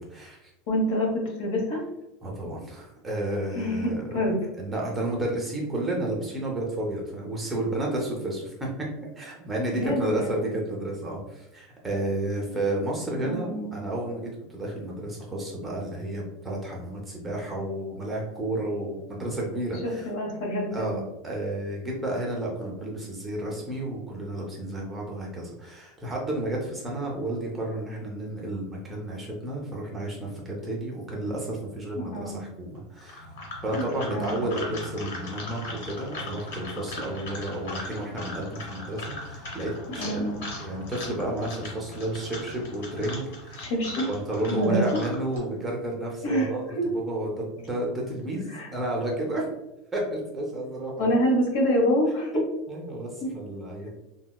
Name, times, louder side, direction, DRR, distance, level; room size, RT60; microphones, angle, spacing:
voice 1, 0.0-0.5 2.2-4.3 4.6-8.9 9.2-20.1 20.7-33.2 33.6-40.2 40.6-43.6 44.1-49.5 49.9-51.1 52.7-53.9, right 1 dB, 10° right, -2 dB, 0.5 m, -31 dB
voice 2, 0.7-1.8 3.5-4.4 9.7-10.4 13.2-13.7 19.8-21.0 31.9-32.4 33.7-33.8 34.1-34.4 40.0-40.4 43.6-44.0 44.5-45.0 46.2-46.9 48.5-48.7 51.0-52.3 53.2-53.3, equal, 60° left, -1 dB, 1.1 m, -26 dB
sound 1, 33.0-45.4, left 2 dB, 80° left, 1.3 m, -39 dB
4.0 x 2.1 x 2.2 m, 0.92 s
supercardioid pair, 175°, 0 cm